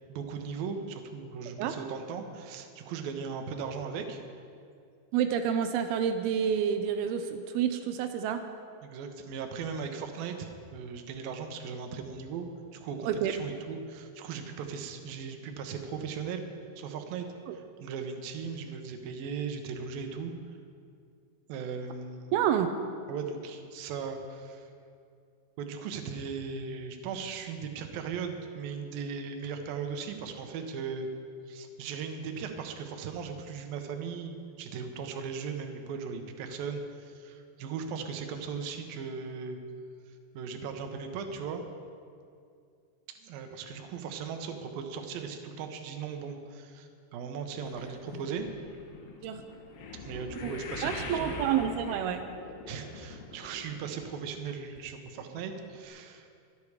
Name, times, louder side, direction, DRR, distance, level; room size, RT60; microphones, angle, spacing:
voice 1, 0.1-4.2 8.8-12.5 12.7-16.4 16.8-20.3 21.5-22.4 23.1-24.7 25.6-31.1 31.5-39.6 40.1-41.6 43.2-48.5 49.9-51.4 52.7-56.3, right 6 dB, 70° right, 5 dB, 2.3 m, -38 dB
voice 2, 5.1-8.4 13.0-13.3 17.5-17.6 22.3-22.7 49.2-49.4 50.4-50.5 50.8-52.3, right 8 dB, 90° right, 7 dB, 2.1 m, -28 dB
sound 1, 47.7-54.1 54.3-54.8 55.4-55.5 55.8-55.9, left 4 dB, 70° left, 3.2 m, -43 dB
24.5 x 8.6 x 4.8 m, 2.3 s
omnidirectional pair, 5.3 m